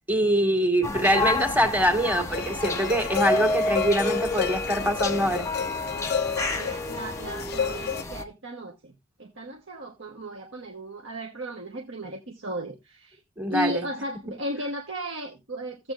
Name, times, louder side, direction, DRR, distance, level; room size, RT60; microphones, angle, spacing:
voice 1, 0.1-5.5 13.4-13.8, equal, 10° right, 1.9 m, -24 dB
sound 1, 0.8-8.2, left 2 dB, 15° left, 1.0 m, -30 dB
sound 2, 2.3-8.0, left 7 dB, 50° left, 0.5 m, -31 dB
voice 2, 6.5-8.9 9.2-13.2 13.5-15.9, equal, 60° right, 1.2 m, -35 dB
16.0 x 7.8 x 2.5 m
head